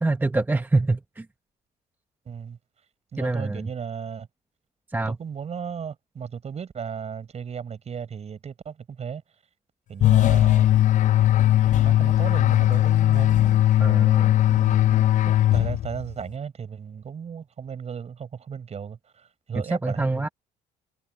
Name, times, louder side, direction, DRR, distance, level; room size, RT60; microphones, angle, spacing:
voice 1, 0.0-1.3 3.2-3.7 4.9-5.2 13.8-14.3 19.7-20.3, right 2 dB, 10° right, 1.0 m, -25 dB
voice 2, 2.3-2.6 3.1-4.3 5.1-9.2 9.9-10.7 11.7-13.6 14.5-20.3, right 7 dB, 40° right, 5.7 m, -35 dB
sound 1, 10.0-16.1, left 13 dB, 45° left, 0.5 m, -19 dB
cardioid pair, 110°, 17 cm